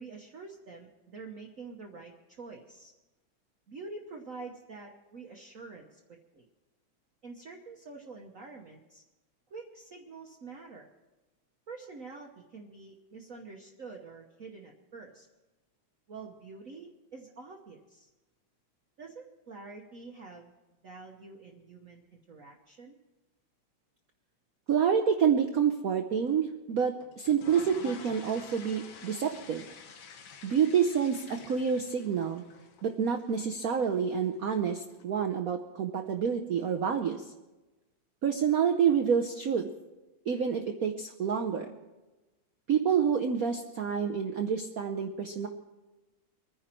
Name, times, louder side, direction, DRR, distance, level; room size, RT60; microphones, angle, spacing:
voice 1, 0.0-2.9 3.7-6.4 7.2-9.0 9.5-10.9 11.7-15.3 16.1-18.1 19.0-20.5 20.8-23.0, right 4 dB, 50° right, 1 dB, 1.1 m, -47 dB
voice 2, 24.7-29.7 30.4-32.4 32.8-37.3 38.2-39.7 40.3-41.7 42.7-45.5, right 7 dB, 70° right, 5 dB, 0.8 m, -28 dB
sound 1, 27.0-35.0, left 6 dB, 90° left, 2.1 m, -50 dB
24.0 x 10.0 x 4.4 m, 1.1 s
omnidirectional pair, 2.4 m